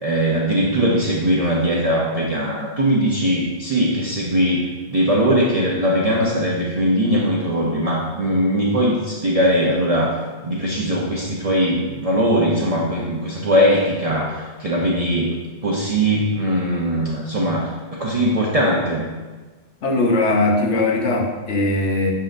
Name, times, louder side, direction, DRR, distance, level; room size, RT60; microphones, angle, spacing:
voice 1, 0.0-10.2 10.4-19.1, equal, 40° right, -4 dB, 0.7 m, -20 dB
voice 2, 19.8-22.1, left 2 dB, 80° left, 0 dB, 1.3 m, -19 dB
10.0 x 3.8 x 2.6 m, 1.3 s
omnidirectional pair, 1.2 m